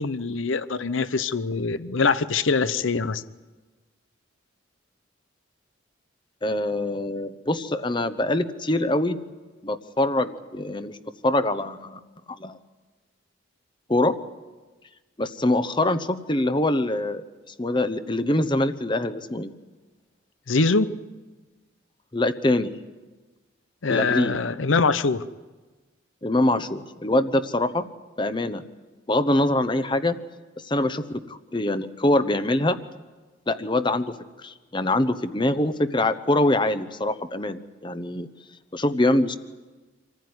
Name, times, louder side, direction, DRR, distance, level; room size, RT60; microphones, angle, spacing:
voice 1, 0.0-3.2 20.5-20.9 23.8-25.2, left 4 dB, 75° left, 14 dB, 0.8 m, -23 dB
voice 2, 6.4-9.2 9.6-11.0 11.2-12.0 12.3-12.6 13.9-14.1 15.2-19.5 22.1-22.7 23.9-24.4 26.2-27.9 28.2-28.6 29.1-30.2 30.6-32.8 33.5-34.1 34.4-38.3 38.7-39.4, left 1 dB, 25° left, 11 dB, 0.9 m, -24 dB
26.5 x 15.0 x 9.6 m, 1.3 s
head